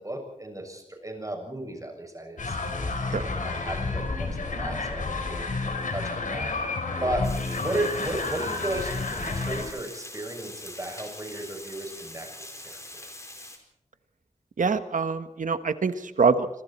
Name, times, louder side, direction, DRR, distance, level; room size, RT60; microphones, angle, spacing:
voice 1, 0.0-2.7 3.2-7.3 7.6-12.3 12.6-13.1, right 1 dB, 25° right, 3 dB, 6.8 m, -34 dB
sound 1, 2.4-9.7, left 3 dB, 85° left, 4.2 m, -30 dB
Water, 7.2-13.6, left 1 dB, 25° left, 4.4 m, -43 dB
voice 2, 14.6-16.5, right 5 dB, 90° right, 10 dB, 1.4 m, -24 dB
26.5 x 23.5 x 4.4 m, 0.85 s
wide cardioid pair, 70°, 13 cm